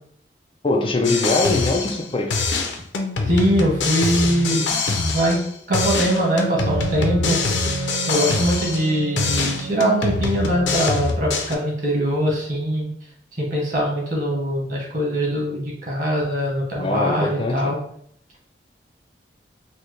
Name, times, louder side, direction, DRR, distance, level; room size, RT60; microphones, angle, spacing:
voice 1, 0.6-2.3 16.8-17.7, left 2 dB, 30° left, 3 dB, 0.4 m, -22 dB
sound 1, 1.0-2.1 2.3-5.5 5.7-8.9 9.2-11.6, left 3 dB, 90° left, 0.5 m, -24 dB
voice 2, 3.2-5.4 5.7-7.4 8.1-12.9 13.4-17.8, equal, 50° right, -3 dB, 1.2 m, -22 dB
Wind instrument woodwind instrument, 5.7-11.1, right 9 dB, 75° right, 0.6 m, -31 dB
4.0 x 2.1 x 3.1 m, 0.64 s
head